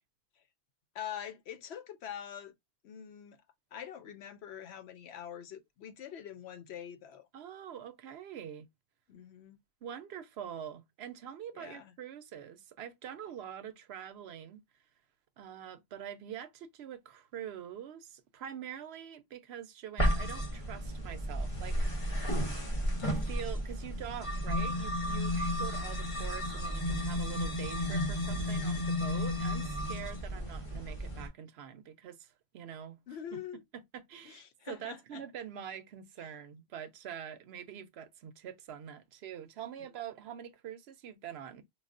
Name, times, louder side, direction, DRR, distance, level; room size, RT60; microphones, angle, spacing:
voice 1, 0.9-2.5 2.8-3.4 3.7-7.3 9.1-9.6 11.5-11.9 33.1-33.6 34.2-35.2 36.2-36.3, left 9 dB, 85° left, 0.9 m, -44 dB
voice 2, 7.3-8.7 9.8-14.6 15.4-22.5 23.1-33.0 33.3-33.4 33.7-41.6, right 9 dB, 90° right, 0.9 m, -45 dB
sound 1, 20.0-31.3, equal, 35° left, 1.0 m, -33 dB
4.8 x 2.3 x 2.5 m
omnidirectional pair, 1.1 m